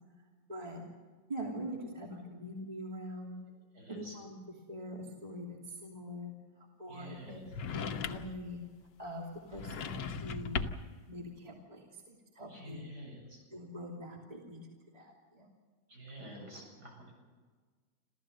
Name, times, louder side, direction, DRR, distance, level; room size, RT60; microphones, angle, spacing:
voice 1, 0.5-0.8 1.3-3.4 3.9-4.4 4.7-7.4 7.7-8.6 9.0-10.7 11.1-12.8 13.5-14.6 14.9-15.5, equal, 20° right, 0 dB, 2.8 m, -43 dB
voice 2, 3.7-4.2 6.9-7.4 12.5-13.4 15.9-17.1, equal, 60° right, 0 dB, 7.9 m, -48 dB
sound 1, 7.5-8.4 9.5-11.0, left 6 dB, 70° left, 1.7 m, -37 dB
27.5 x 15.0 x 7.8 m, 1.5 s
omnidirectional pair, 2.0 m